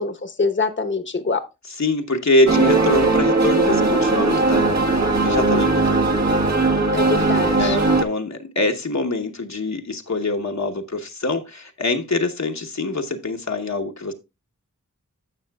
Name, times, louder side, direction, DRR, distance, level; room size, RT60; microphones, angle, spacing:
voice 1, 0.0-1.4 6.9-7.8, left 4 dB, 35° left, 1.0 m, -24 dB
voice 2, 1.8-4.7 5.2-6.1 7.5-14.1, left 2 dB, 60° left, 1.1 m, -24 dB
sound 1, 2.5-8.0, right 3 dB, 60° right, 1.4 m, -18 dB
15.5 x 5.6 x 2.3 m
wide cardioid pair, 45°, 32 cm